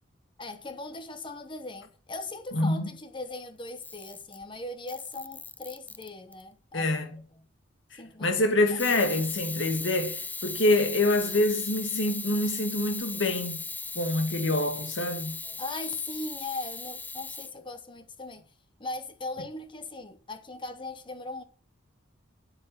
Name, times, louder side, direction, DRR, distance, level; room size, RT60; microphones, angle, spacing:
voice 1, 0.4-7.4 8.0-8.3 8.7-8.8 15.4-18.4 18.8-21.4, left 2 dB, 25° left, 0.9 m, -39 dB
voice 2, 2.5-2.9 6.7-7.1 8.2-13.6 14.0-15.4, left 1 dB, 70° left, 1.9 m, -26 dB
Camera, 3.7-4.4 4.9-6.4 8.8-17.5, left 4 dB, 10° left, 0.4 m, -38 dB
9.0 x 8.4 x 6.0 m
head